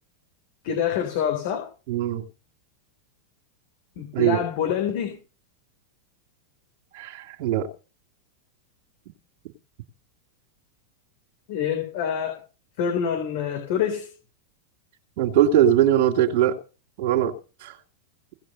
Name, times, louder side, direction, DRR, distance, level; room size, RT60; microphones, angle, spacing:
voice 1, 0.6-1.7 4.0-5.2 11.5-12.4 12.8-14.1, left 8 dB, 50° left, 3 dB, 3.8 m, -26 dB
voice 2, 1.9-2.3 4.1-4.4 6.9-7.7 15.2-16.6 17.0-17.3 17.6-17.8, right 10 dB, 45° right, 1 dB, 2.8 m, -21 dB
17.5 x 8.8 x 5.5 m, 0.34 s
figure-of-eight pair, 90°, 0 cm